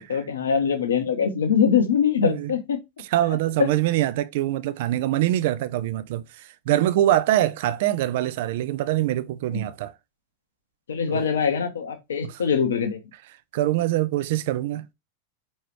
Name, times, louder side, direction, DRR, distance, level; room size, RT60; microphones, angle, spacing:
voice 1, 0.0-2.8 3.6-3.7 9.5-9.6 10.9-13.0, left 7 dB, 65° left, 0.8 m, -23 dB
voice 2, 3.0-9.9 11.1-11.2 12.2-12.4 13.5-14.8, right 14 dB, 50° right, 0.3 m, -24 dB
4.7 x 3.1 x 3.1 m
figure-of-eight pair, 90°, 0 cm